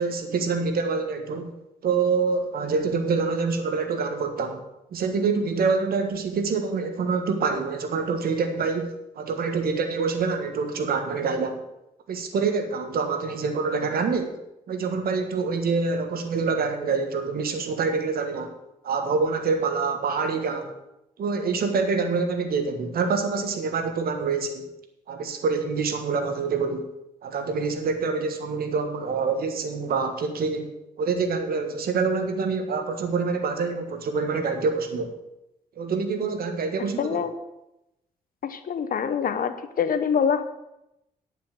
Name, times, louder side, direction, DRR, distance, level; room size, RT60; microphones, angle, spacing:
voice 1, 0.0-1.5 1.8-4.6 4.9-11.6 12.1-14.4 14.7-18.5 18.8-20.7 21.2-24.7 25.1-26.9 27.2-30.7 31.0-35.1 35.8-37.2, right 4 dB, 75° right, 7 dB, 1.5 m, -26 dB
voice 2, 37.0-37.3 38.4-40.4, left 7 dB, 65° left, 11 dB, 1.0 m, -25 dB
10.0 x 5.8 x 7.6 m, 0.88 s
supercardioid pair, 50°, 16 cm